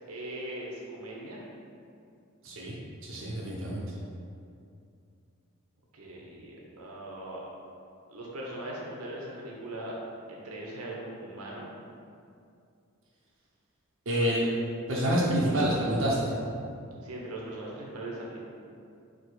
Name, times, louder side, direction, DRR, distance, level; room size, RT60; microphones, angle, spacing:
voice 1, 0.1-1.4 5.9-7.4 8.1-10.0 10.3-11.7 17.0-18.4, right 1 dB, 90° right, -3 dB, 1.0 m, -40 dB
voice 2, 2.4-2.7 3.0-3.8 14.1-14.5 14.9-16.3, equal, 65° right, -6 dB, 0.9 m, -27 dB
4.9 x 4.4 x 4.7 m, 2.5 s
head